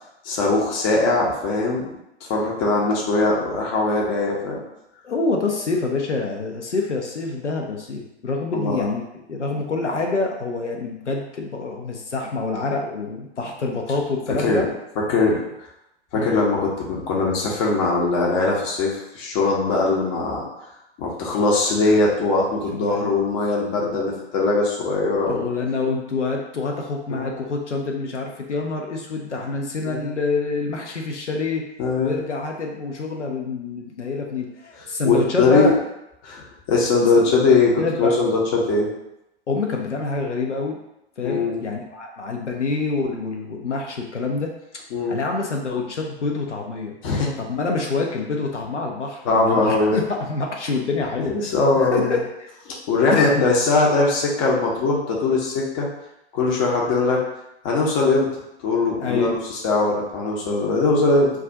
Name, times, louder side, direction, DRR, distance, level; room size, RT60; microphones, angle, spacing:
voice 1, 0.2-1.8 2.2-4.6 8.5-8.9 14.4-14.6 15.1-15.4 16.1-20.5 21.0-25.4 27.1-27.3 29.9-30.0 31.8-32.1 35.0-35.7 36.2-38.9 41.2-41.6 44.9-45.2 47.0-47.3 49.2-49.9 51.3-52.2 52.9-55.9 56.3-57.2 57.6-58.3 58.6-61.3, left 3 dB, 30° left, -3 dB, 0.7 m, -21 dB
voice 2, 5.0-14.7 16.1-16.4 22.7-23.1 25.3-31.6 32.0-35.7 37.8-38.2 39.5-40.8 41.2-44.8 45.1-46.9 47.4-51.4 51.8-52.5 53.1-53.4 59.0-59.4, left 3 dB, 85° left, 0 dB, 0.6 m, -26 dB
2.4 x 2.3 x 3.9 m, 0.86 s
figure-of-eight pair, 105°, 34 cm